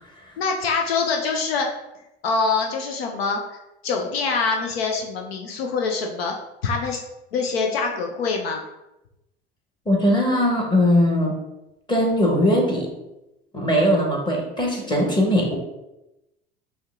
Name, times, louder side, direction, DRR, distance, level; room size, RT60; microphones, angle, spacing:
voice 1, 0.4-1.7 2.2-3.6 3.8-6.3 6.6-7.0 7.3-8.6, left 4 dB, 75° left, 2 dB, 0.6 m, -24 dB
voice 2, 9.8-11.4 11.9-12.9 13.5-15.6, equal, 15° left, -1 dB, 1.3 m, -20 dB
5.2 x 2.3 x 3.6 m, 0.94 s
figure-of-eight pair, 70°, 30 cm